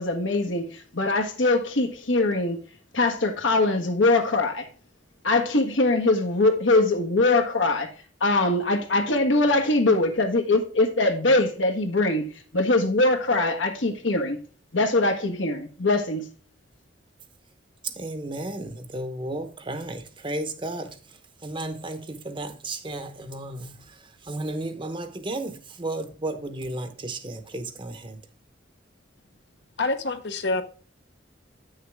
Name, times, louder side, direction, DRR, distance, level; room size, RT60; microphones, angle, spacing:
voice 1, 0.0-2.6 2.9-4.7 5.2-7.9 8.2-14.4 14.7-16.2, left 2 dB, 80° left, 1.4 m, -22 dB
voice 2, 17.8-28.2, right 2 dB, 25° right, 0.9 m, -34 dB
voice 3, 29.8-30.6, left 3 dB, 60° left, 0.9 m, -26 dB
8.9 x 6.5 x 3.5 m
head